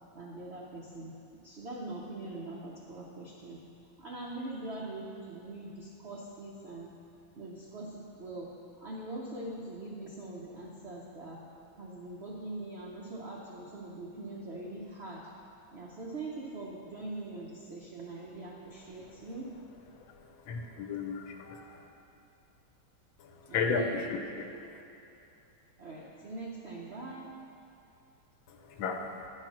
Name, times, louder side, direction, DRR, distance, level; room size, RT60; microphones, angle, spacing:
voice 1, 0.1-1.2 1.4-3.6 4.0-6.9 7.3-8.5 8.8-11.4 11.8-15.2 15.7-19.5 23.5-24.0 25.8-27.3, right 2 dB, 75° right, -3 dB, 0.6 m, -42 dB
voice 2, 20.5-21.8 23.5-24.2 28.8-29.0, left 5 dB, 80° left, 3 dB, 1.5 m, -32 dB
9.7 x 4.5 x 6.1 m, 2.7 s
omnidirectional pair, 2.2 m